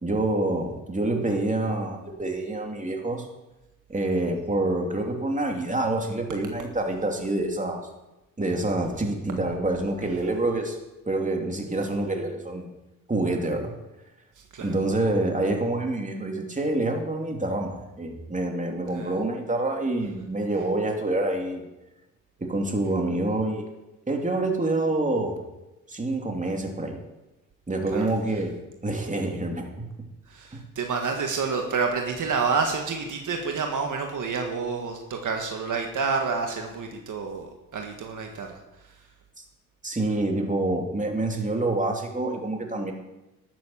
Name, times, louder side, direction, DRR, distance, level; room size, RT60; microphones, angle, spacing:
voice 1, 0.0-3.3 3.9-7.8 8.4-10.8 11.1-12.7 13.1-13.7 14.6-21.7 22.4-23.6 24.1-25.4 25.9-27.0 27.7-28.5 28.8-29.9 30.5-30.6 39.8-42.9, right 2 dB, 20° right, 2 dB, 2.8 m, -27 dB
voice 2, 14.3-14.8 18.9-19.1 27.9-28.4 30.3-39.1, right 5 dB, 60° right, 3 dB, 1.6 m, -29 dB
12.0 x 7.6 x 7.4 m, 0.99 s
cardioid pair, 65°, 34 cm